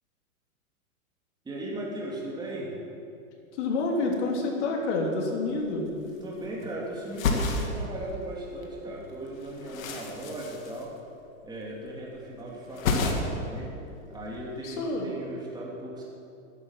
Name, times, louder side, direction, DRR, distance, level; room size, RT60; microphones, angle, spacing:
voice 1, 1.4-2.7 6.0-10.9 11.4-13.8 14.1-16.0, right 1 dB, 10° right, -4 dB, 2.9 m, -37 dB
voice 2, 3.5-5.9 14.6-15.2, left 3 dB, 55° left, 0 dB, 3.3 m, -28 dB
sound 1, 5.5-5.6 5.8-6.7 7.0-8.7 8.9-11.5 11.7-12.2 12.5-13.5 13.8-14.6, left 3 dB, 70° left, 2.4 m, -31 dB
13.0 x 11.0 x 7.5 m, 2.6 s
hypercardioid pair, 130°, 42 cm